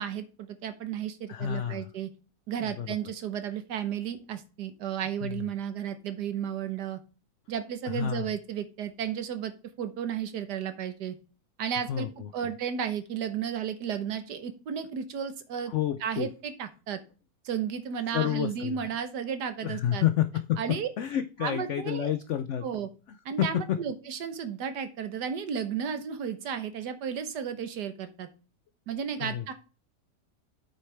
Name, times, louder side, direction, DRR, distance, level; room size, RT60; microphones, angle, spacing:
voice 1, 0.0-2.1 2.5-7.0 7.5-9.5 9.8-11.2 11.6-12.1 12.3-15.7 16.0-17.0 17.4-20.1 20.6-20.9 21.4-22.1 22.6-22.9 23.2-28.3 28.9-29.5, right 8 dB, 70° right, 10 dB, 1.6 m, -33 dB
voice 2, 1.3-1.8 2.6-3.0 5.2-5.4 7.9-8.3 11.9-12.3 15.7-16.3 18.1-18.8 19.6-20.6 21.0-22.7 23.4-23.8 29.2-29.5, left 11 dB, 75° left, 11 dB, 0.6 m, -29 dB
8.4 x 6.4 x 3.3 m, 0.33 s
omnidirectional pair, 1.9 m